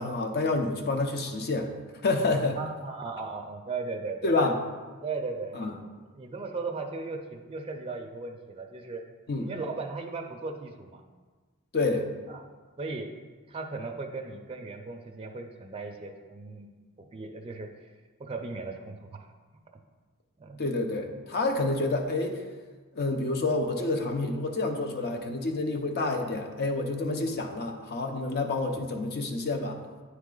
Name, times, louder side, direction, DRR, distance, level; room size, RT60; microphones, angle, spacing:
voice 1, 0.0-1.7 2.0-2.6 4.2-4.6 5.5-5.7 9.3-9.5 11.7-12.1 20.6-22.4 22.9-29.8, left 2 dB, 45° left, 4 dB, 0.6 m, -28 dB
voice 2, 2.6-4.3 5.0-5.5 6.1-9.0 9.5-11.0 12.3-12.4 12.8-13.1 13.5-16.7 17.0-17.7 18.2-19.3 20.4-20.6, right 3 dB, 25° right, 2 dB, 0.4 m, -37 dB
9.5 x 3.3 x 3.8 m, 1.4 s
head